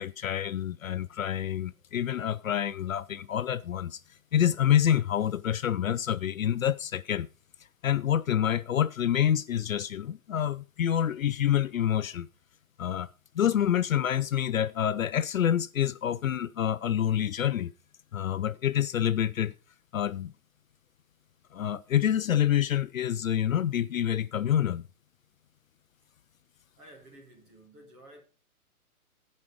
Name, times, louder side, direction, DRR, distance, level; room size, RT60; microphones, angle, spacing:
voice 1, 0.0-4.0 4.3-7.3 7.8-12.3 12.8-13.1 13.3-17.7 18.1-19.5 19.9-20.3 21.5-24.9, left 10 dB, 65° left, 0.7 m, -27 dB
voice 2, 26.7-28.2, right 1 dB, 10° right, 1.7 m, -52 dB
16.0 x 5.5 x 4.9 m
hypercardioid pair, 170°, 44 cm